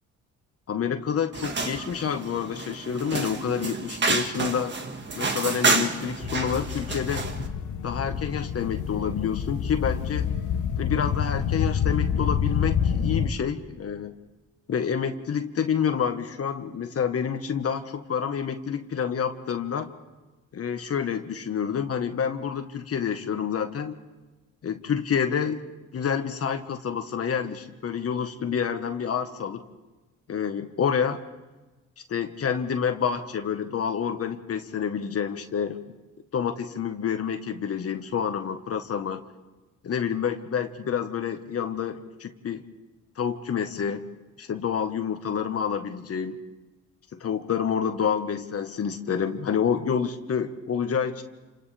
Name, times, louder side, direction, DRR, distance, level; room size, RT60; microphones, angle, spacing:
voice 1, 0.7-4.7 5.1-7.2 7.8-10.3 10.8-14.1 14.7-19.9 20.5-24.0 24.6-25.6 25.9-29.6 30.3-31.2 32.1-35.8 36.3-39.2 39.8-42.6 43.2-44.0 44.4-46.4 47.1-51.2, left 7 dB, 50° left, 7 dB, 1.4 m, -28 dB
sound 1, 1.3-7.5, right 4 dB, 35° right, 1.8 m, -29 dB
sound 2, 6.2-13.3, left 8 dB, 75° left, 1.2 m, -27 dB
28.5 x 27.0 x 3.4 m, 1.2 s
cardioid pair, 90°, 30 cm